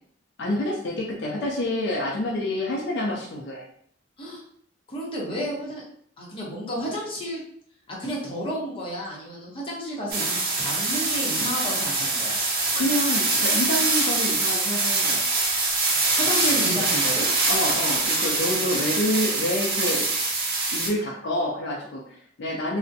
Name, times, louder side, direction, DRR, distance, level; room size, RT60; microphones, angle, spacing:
voice 1, 0.4-3.7 12.7-15.2 17.5-20.1 20.7-22.8, left 1 dB, 60° left, -2 dB, 0.4 m, -27 dB
voice 2, 4.9-5.8 6.2-7.4 7.9-12.4 16.2-17.3, equal, 30° left, -5 dB, 0.7 m, -31 dB
sound 1, 10.1-20.9, right 3 dB, 50° right, 0.6 m, -24 dB
2.5 x 2.0 x 2.5 m, 0.63 s
head